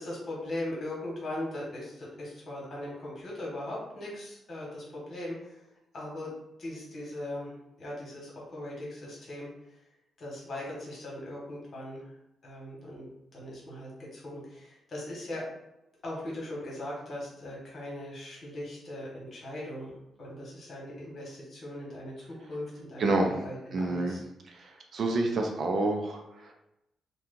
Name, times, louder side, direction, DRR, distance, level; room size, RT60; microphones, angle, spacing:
voice 1, 0.0-5.6 5.9-6.3 6.6-9.8 10.2-12.1 12.4-15.4 16.0-24.2, left 1 dB, 50° left, -4 dB, 1.5 m, -39 dB
voice 2, 23.0-23.3 23.7-24.2 24.5-26.5, right 2 dB, 55° right, 2 dB, 0.5 m, -28 dB
2.8 x 2.3 x 3.7 m, 0.90 s
cardioid pair, 115°, 0 cm